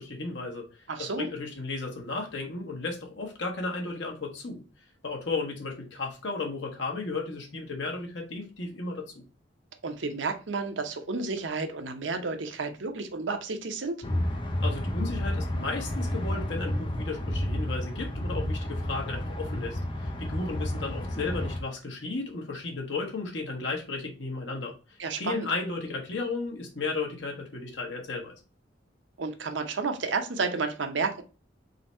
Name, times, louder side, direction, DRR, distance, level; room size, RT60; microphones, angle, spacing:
voice 1, 0.0-4.6 5.0-9.2 14.6-28.3, left 3 dB, 80° left, 0 dB, 1.3 m, -34 dB
voice 2, 0.9-1.3 9.8-14.0 25.0-25.5 29.2-31.2, right 4 dB, 85° right, 6 dB, 0.8 m, -31 dB
sound 1, 14.0-21.6, left 1 dB, 25° left, 0.6 m, -31 dB
3.9 x 2.7 x 4.3 m, 0.32 s
head